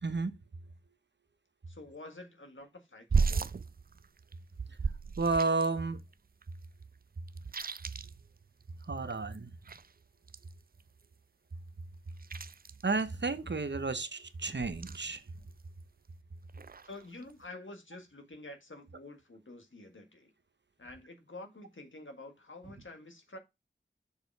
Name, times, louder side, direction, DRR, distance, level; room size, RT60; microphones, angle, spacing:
voice 1, 0.0-0.3 4.7-4.8 5.2-6.0 8.8-9.5 12.8-15.3, right 3 dB, 65° right, 0.9 m, -32 dB
voice 2, 1.7-3.5 16.8-20.3 20.8-23.4, left 2 dB, 90° left, 1.7 m, -48 dB
sound 1, 3.1-5.9 6.1-6.2 6.4-8.8 9.1-11.1 11.7-13.8 14.5-15.4 15.7-16.2 16.5-17.4, right 5 dB, 50° right, 0.4 m, -36 dB
6.8 x 5.1 x 4.6 m
wide cardioid pair, 40°, 20 cm